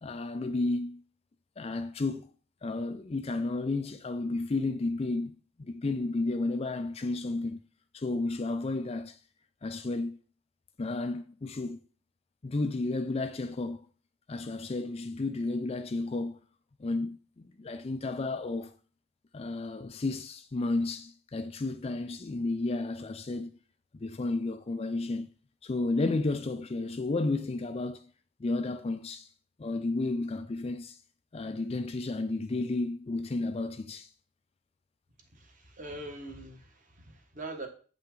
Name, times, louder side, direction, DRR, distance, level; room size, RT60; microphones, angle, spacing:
voice 1, 0.0-1.0 1.6-2.3 2.6-5.3 5.6-7.6 7.9-9.2 9.6-10.2 10.8-11.8 12.4-13.8 14.3-16.4 16.8-18.7 19.3-23.5 24.0-25.3 25.6-28.1 28.4-29.3 29.6-31.0 31.3-34.1, left 2 dB, 25° left, 0.4 m, -32 dB
voice 2, 35.3-37.7, right 2 dB, 35° right, 1.3 m, -43 dB
8.2 x 5.6 x 3.8 m
head